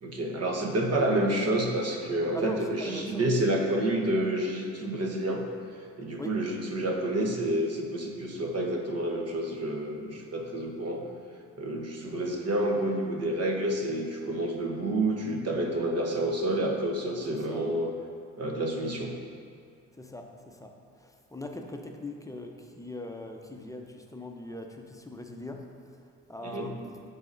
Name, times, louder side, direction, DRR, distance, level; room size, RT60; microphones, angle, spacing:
voice 1, 0.0-5.4 6.0-11.0 11.6-17.9 18.4-19.2 26.4-26.7, right 1 dB, 40° right, 1 dB, 1.3 m, -29 dB
voice 2, 2.3-3.4 6.2-6.4 17.3-17.7 19.9-27.0, left 1 dB, 10° left, 3 dB, 0.7 m, -41 dB
12.0 x 4.2 x 2.6 m, 2.2 s
hypercardioid pair, 55°, 37 cm